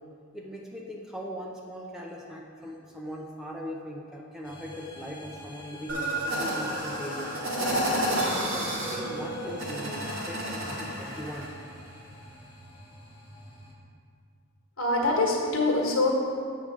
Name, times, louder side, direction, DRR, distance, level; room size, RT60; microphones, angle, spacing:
voice 1, 0.3-7.3 8.2-11.5, equal, ahead, -2 dB, 0.5 m, -40 dB
sound 1, 4.4-13.7, left 1 dB, 25° left, 1.0 m, -46 dB
sound 2, 5.9-11.5, right 1 dB, 65° right, 1.5 m, -30 dB
voice 2, 14.8-16.1, left 2 dB, 70° left, -1 dB, 1.4 m, -24 dB
8.1 x 3.9 x 6.0 m, 2.3 s
head